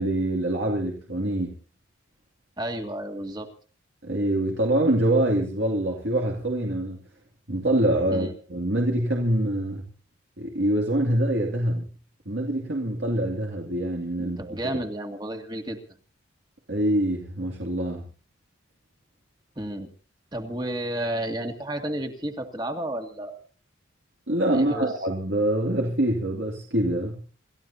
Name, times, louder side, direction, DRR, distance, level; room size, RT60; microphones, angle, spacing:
voice 1, 0.0-1.6 4.0-7.0 7.5-9.8 10.4-11.9 12.3-14.8 16.7-18.0 24.3-27.2, right 1 dB, 60° right, -1 dB, 2.6 m, -25 dB
voice 2, 2.6-3.5 8.1-8.3 14.2-15.8 19.6-19.9 20.3-23.4 24.5-24.9, right 1 dB, 20° right, 4 dB, 2.1 m, -32 dB
28.5 x 14.5 x 2.8 m, 0.39 s
head